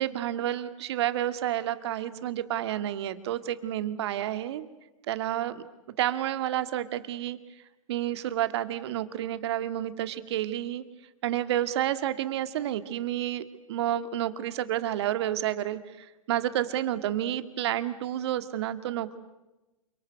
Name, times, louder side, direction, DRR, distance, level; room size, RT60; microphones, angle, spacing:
voice 1, 0.0-4.7 5.1-5.6 6.0-7.4 7.9-10.8 11.2-19.2, right 12 dB, 50° right, 12 dB, 2.1 m, -30 dB
28.5 x 26.0 x 8.0 m, 1.0 s
figure-of-eight pair, 115°, 17 cm